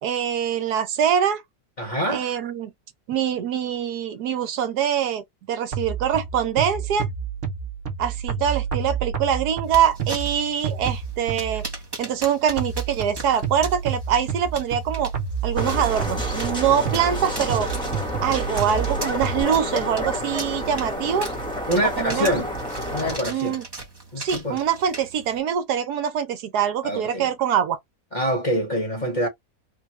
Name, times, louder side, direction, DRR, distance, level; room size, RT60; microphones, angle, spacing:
voice 1, 0.0-1.4 2.1-2.7 3.1-7.1 8.0-11.7 12.0-15.1 15.4-17.7 18.2-21.3 22.0-22.4 23.3-23.6 24.2-27.8, right 9 dB, 75° right, 1.2 m, -24 dB
voice 2, 1.8-2.3 21.7-22.5 22.9-23.6 24.1-24.6 26.8-27.3 28.1-29.3, equal, 30° left, 1.2 m, -25 dB
sound 1, 5.7-11.8 12.6-19.4, right 6 dB, 55° right, 1.0 m, -29 dB
sound 2, 9.6-25.4, right 3 dB, 20° right, 0.8 m, -39 dB
sound 3, 15.6-23.2, equal, 5° left, 1.0 m, -29 dB
3.9 x 2.3 x 3.0 m
omnidirectional pair, 1.8 m